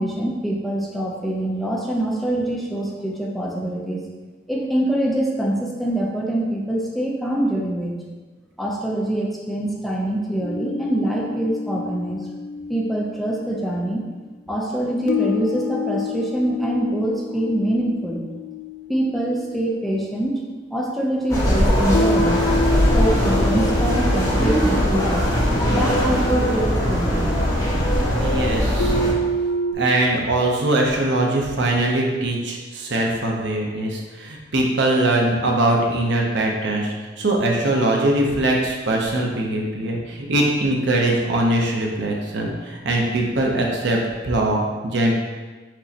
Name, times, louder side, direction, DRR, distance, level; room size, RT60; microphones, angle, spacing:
voice 1, 0.0-4.0 4.5-8.0 8.6-12.2 12.7-14.0 14.5-18.2 18.9-20.4 20.7-22.4 22.9-25.3 25.7-27.3, right 1 dB, ahead, -3 dB, 0.5 m, -24 dB
sound 1, 10.4-13.7 15.1-20.5 21.9-27.4 28.8-29.7, left 2 dB, 80° left, 0.4 m, -29 dB
sound 2, 21.3-29.1, equal, 20° left, 1.1 m, -20 dB
voice 2, 28.2-28.9 29.7-45.2, right 1 dB, 65° right, -1 dB, 0.7 m, -21 dB
6.1 x 3.0 x 2.8 m, 1.3 s
head